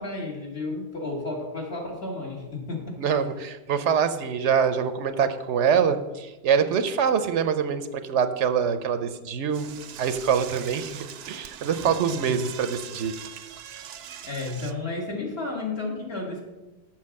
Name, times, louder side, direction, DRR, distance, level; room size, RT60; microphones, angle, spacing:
voice 1, 0.0-3.0 12.1-12.4 14.2-16.4, left 3 dB, 60° left, -1 dB, 2.4 m, -32 dB
voice 2, 3.0-9.7 10.0-13.1, right 7 dB, 90° right, 10 dB, 1.0 m, -24 dB
Door / Toilet flush, 9.5-14.7, right 9 dB, 70° right, 0.8 m, -41 dB
7.5 x 6.1 x 7.4 m, 1.1 s
omnidirectional pair, 1.2 m